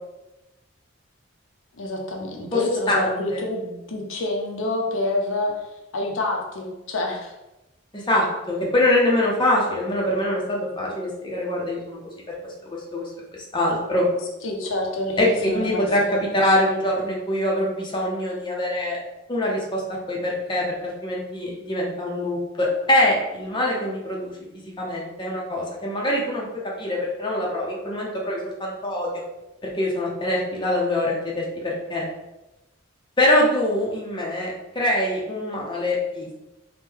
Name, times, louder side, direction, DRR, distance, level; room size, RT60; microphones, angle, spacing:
voice 1, 1.8-5.5 5.9-7.3 14.4-16.7, left 2 dB, 80° left, 1 dB, 0.6 m, -28 dB
voice 2, 2.9-3.4 7.9-12.0 12.4-13.1 13.5-14.1 15.2-19.0 19.3-19.8 20.1-24.3 24.8-26.5 26.8-29.2 29.8-32.0 33.2-36.3, left 1 dB, 25° left, -3 dB, 0.6 m, -24 dB
3.1 x 2.1 x 3.5 m, 0.97 s
head